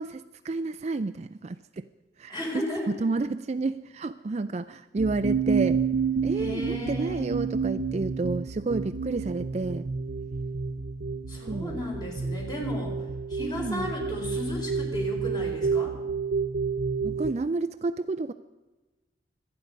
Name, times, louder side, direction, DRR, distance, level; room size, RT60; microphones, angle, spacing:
voice 1, 0.0-1.9 2.2-2.4 2.9-5.8 6.2-9.9 11.5-11.8 13.4-13.9 17.0-18.3, right 3 dB, 40° right, 10 dB, 0.4 m, -30 dB
voice 2, 2.3-2.9 6.4-7.2 11.3-12.9 13.3-16.0, left 1 dB, 25° left, 0 dB, 4.4 m, -34 dB
sound 1, 5.0-17.3, right 5 dB, 90° right, 0.6 m, -30 dB
25.5 x 9.6 x 5.2 m, 1.2 s
head